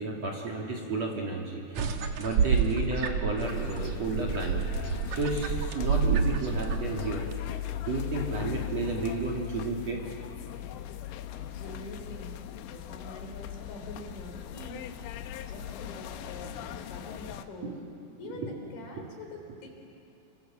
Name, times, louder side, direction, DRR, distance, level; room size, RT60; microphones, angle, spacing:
voice 1, 0.0-4.7 5.1-7.3 7.9-10.0 17.6-17.7 18.3-18.5, right 3 dB, 45° right, -1 dB, 3.0 m, -32 dB
sound 1, 1.8-7.3, right 6 dB, 65° right, 1.9 m, -29 dB
sound 2, 3.4-17.5, left 12 dB, 85° left, 3.2 m, -39 dB
voice 2, 11.3-12.4 12.7-14.9 15.5-17.8 18.2-19.7, left 1 dB, 60° left, 2 dB, 5.2 m, -45 dB
29.0 x 25.5 x 7.5 m, 2.9 s
omnidirectional pair, 5.0 m